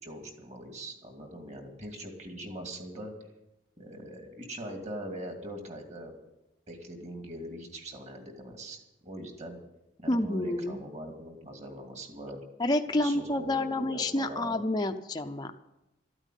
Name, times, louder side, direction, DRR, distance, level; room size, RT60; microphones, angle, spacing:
voice 1, 0.0-3.1 3.8-6.1 6.7-9.6 10.0-12.4 12.9-14.6, right 1 dB, 35° right, 3 dB, 2.4 m, -42 dB
voice 2, 10.1-10.8 12.6-15.6, left 1 dB, 20° left, 5 dB, 0.6 m, -29 dB
13.5 x 8.9 x 9.2 m, 0.94 s
head